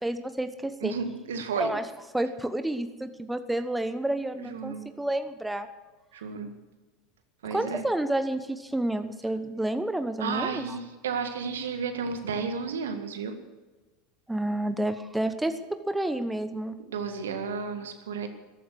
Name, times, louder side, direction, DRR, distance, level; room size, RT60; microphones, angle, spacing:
voice 1, 0.0-0.9 1.6-1.9 2.1-5.7 7.5-10.8 14.3-16.8, right 1 dB, 5° right, 10 dB, 1.0 m, -30 dB
voice 2, 0.8-1.7 4.4-4.8 6.1-6.6 7.4-7.8 10.2-13.3 16.8-18.3, right 5 dB, 75° right, 7 dB, 1.9 m, -32 dB
14.0 x 13.0 x 6.4 m, 1.3 s
figure-of-eight pair, 80°, 0 cm